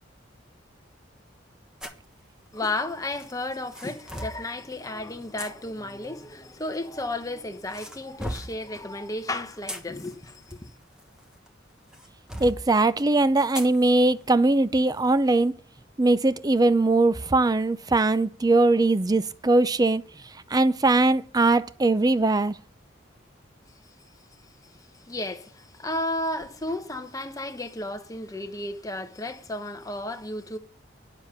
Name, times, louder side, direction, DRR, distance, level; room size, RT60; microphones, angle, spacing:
sound 1, 1.8-2.1 3.2-4.4 5.4-5.5 6.6-7.3 7.7-8.6 9.4-11.5 11.9-12.6 13.5-13.8 14.2-14.3 14.9-15.1, equal, 5° right, 1.2 m, -37 dB
voice 1, 2.5-10.7 24.9-30.6, left 2 dB, 20° left, 1.0 m, -33 dB
voice 2, 12.4-15.5 16.0-20.0 20.5-22.5, right 2 dB, 20° right, 0.5 m, -21 dB
9.7 x 7.2 x 6.7 m
head